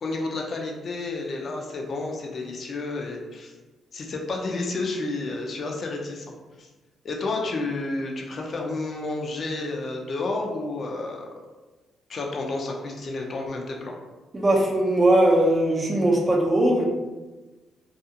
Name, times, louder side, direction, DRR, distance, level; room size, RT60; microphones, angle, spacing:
voice 1, 0.0-3.5 3.9-6.3 6.6-6.7 7.0-11.3 12.1-14.0, left 2 dB, 50° left, 1 dB, 0.5 m, -30 dB
voice 2, 14.3-17.0, right 1 dB, 25° right, -2 dB, 0.6 m, -20 dB
2.4 x 2.4 x 2.7 m, 1.2 s
cardioid pair, 90°, 0 cm